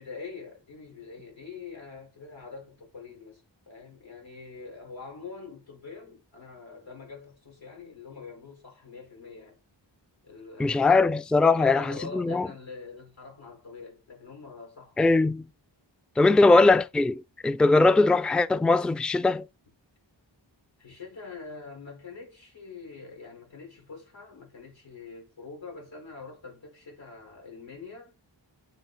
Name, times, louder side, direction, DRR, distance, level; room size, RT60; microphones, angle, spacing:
voice 1, 0.0-9.6 10.2-11.1 11.5-15.2 20.8-28.1, left 4 dB, 90° left, 4.8 m, -44 dB
voice 2, 10.6-12.5 15.0-15.4 16.2-19.5, left 3 dB, ahead, 0.3 m, -21 dB
9.1 x 4.2 x 3.9 m
wide cardioid pair, 45°, 45 cm